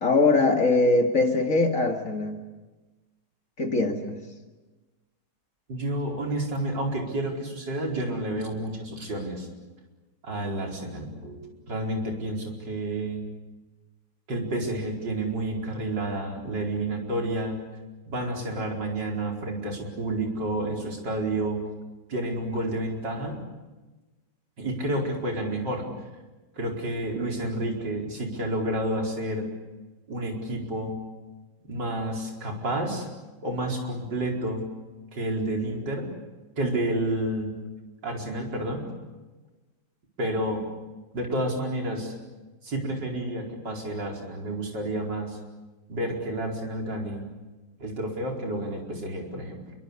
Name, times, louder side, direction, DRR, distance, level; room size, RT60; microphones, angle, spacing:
voice 1, 0.0-2.4 3.6-4.2, left 3 dB, 45° left, 4 dB, 2.5 m, -22 dB
voice 2, 5.7-9.5 10.2-13.2 14.3-17.6 18.1-21.6 22.1-23.4 24.6-25.9 26.6-29.5 30.1-31.0 31.7-33.1 33.4-34.7 35.1-36.1 36.6-37.5 38.0-38.8 40.2-40.6 41.1-42.1 42.6-45.4 45.9-47.3 47.8-49.6, right 1 dB, 70° right, 0 dB, 5.3 m, -30 dB
28.0 x 23.5 x 8.3 m, 1.2 s
omnidirectional pair, 2.0 m